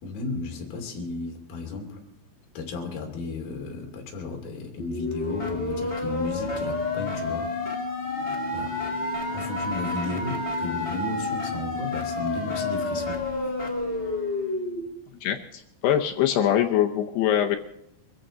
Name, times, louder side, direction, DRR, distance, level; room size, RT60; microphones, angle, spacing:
voice 1, 0.0-2.0 2.5-7.5 8.5-8.8 9.3-13.2, left 3 dB, 50° left, 1 dB, 4.1 m, -34 dB
sound 1, 4.8-14.8, left 2 dB, 25° left, 1.6 m, -29 dB
voice 2, 15.2-17.6, left 10 dB, 80° left, 4 dB, 2.4 m, -23 dB
23.5 x 15.0 x 4.0 m, 0.79 s
omnidirectional pair, 5.7 m